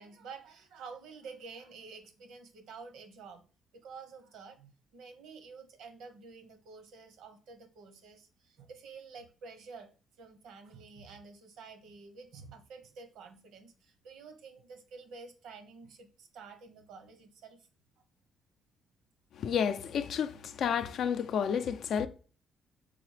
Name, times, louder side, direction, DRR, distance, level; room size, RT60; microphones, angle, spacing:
voice 1, 0.0-3.4 3.7-9.9 10.2-17.7, right 4 dB, 85° right, 0.8 m, -50 dB
voice 2, 19.4-22.1, left 7 dB, 70° left, 0.4 m, -31 dB
4.1 x 3.9 x 3.2 m
cardioid pair, 90°, 0 cm